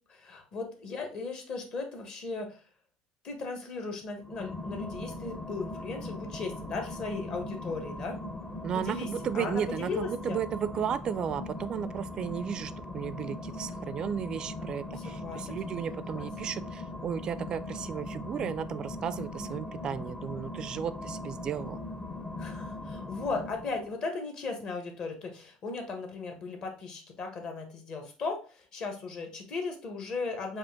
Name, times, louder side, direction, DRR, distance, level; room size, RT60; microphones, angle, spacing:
voice 1, 0.1-2.6 3.2-8.2 8.7-9.1 9.3-10.4 14.6-15.5 16.1-16.3 22.4-30.6, left 4 dB, 45° left, 4 dB, 1.3 m, -37 dB
sound 1, 4.2-23.9, left 2 dB, 20° left, 0.7 m, -40 dB
voice 2, 8.6-21.8, right 8 dB, 40° right, 14 dB, 0.3 m, -34 dB
5.1 x 2.5 x 3.6 m, 0.38 s
supercardioid pair, 120°, 2 cm